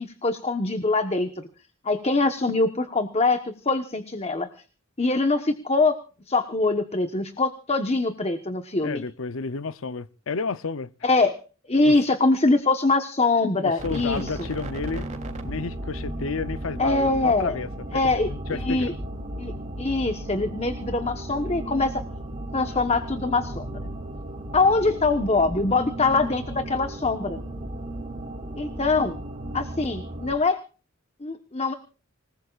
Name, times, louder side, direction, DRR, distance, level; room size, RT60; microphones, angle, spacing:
voice 1, 0.0-1.5 1.8-4.5 5.0-6.0 6.3-9.0 11.0-11.3 11.7-14.3 16.8-17.6 17.9-18.9 19.4-19.5 19.8-22.0 22.5-23.9 24.5-27.4 28.6-29.2 29.5-30.6 31.2-31.7, left 3 dB, 30° left, 1.2 m, -23 dB
voice 2, 8.8-10.9 11.9-12.0 13.6-15.1 15.4-19.0, left 4 dB, 80° left, 0.7 m, -31 dB
sound 1, 13.8-30.3, right 1 dB, 35° right, 3.3 m, -35 dB
26.5 x 19.5 x 2.5 m
head